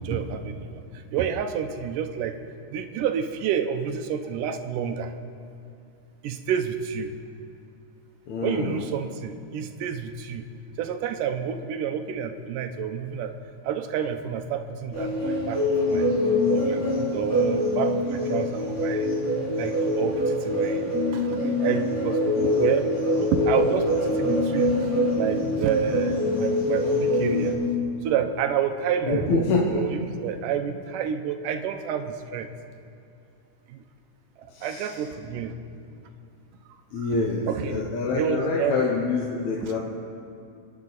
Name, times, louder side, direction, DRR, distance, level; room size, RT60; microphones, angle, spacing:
voice 1, 0.0-2.4 2.7-5.1 6.2-7.1 8.4-10.4 10.8-13.3 13.6-15.6 15.9-16.1 16.5-19.1 19.6-22.9 23.2-27.6 28.0-32.5 33.7-33.8 34.4-35.5 37.0-37.1 37.5-37.8 38.1-38.7 39.6-39.8, right 8 dB, 90° right, 7 dB, 2.4 m, -29 dB
voice 2, 8.3-8.9 29.1-29.8 34.5-35.0 36.9-39.8, left 3 dB, 65° left, -2 dB, 2.4 m, -26 dB
sound 1, 14.9-27.5, left 1 dB, 20° left, 4.6 m, -24 dB
28.5 x 10.5 x 4.1 m, 2.5 s
omnidirectional pair, 3.7 m